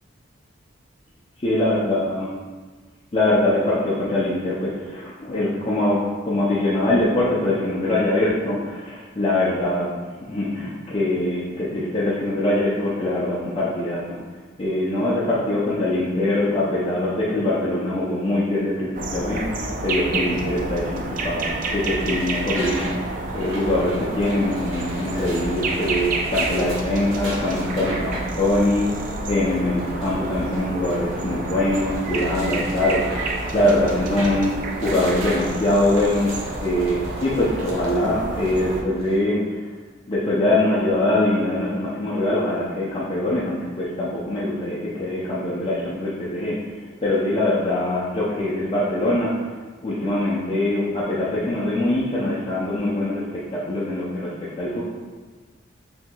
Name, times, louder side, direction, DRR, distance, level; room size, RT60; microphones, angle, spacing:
voice 1, 1.4-2.3 3.1-9.9 10.3-14.2 14.6-39.6 40.1-46.8 47.0-49.3 49.8-54.8, left 1 dB, 30° left, -8 dB, 0.5 m, -23 dB
sound 1, 19.0-38.8, right 2 dB, 40° right, 0.3 m, -29 dB
sound 2, 22.0-39.2, right 1 dB, 80° right, 0.9 m, -39 dB
4.5 x 3.4 x 2.2 m, 1.4 s
head